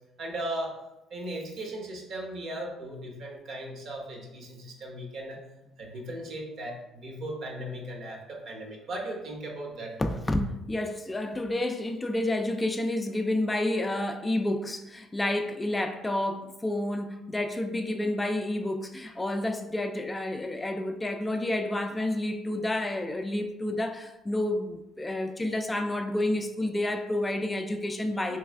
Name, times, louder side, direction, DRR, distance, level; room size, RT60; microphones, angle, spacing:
voice 1, 0.2-0.8 1.1-5.4 5.8-9.9, right 1 dB, 60° right, 1.0 m, -37 dB
voice 2, 10.0-28.4, left 1 dB, 15° left, 0.3 m, -30 dB
3.2 x 3.1 x 3.4 m
cardioid pair, 90°, 0 cm